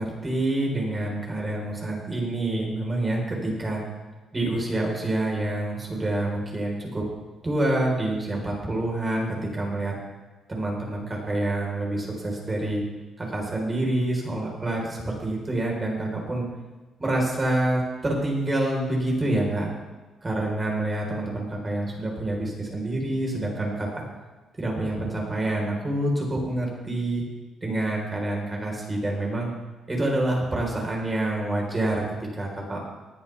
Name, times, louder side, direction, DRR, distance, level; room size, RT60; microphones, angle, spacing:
voice 1, 0.0-3.8 4.3-7.0 7.4-9.9 10.5-12.8 13.2-16.5 17.0-19.7 20.2-24.0 24.6-27.2 27.6-29.5 29.9-32.0 32.3-32.8, right 1 dB, 25° right, -1 dB, 4.6 m, -27 dB
19.0 x 11.0 x 3.6 m, 1.2 s
cardioid pair, 90°, 0 cm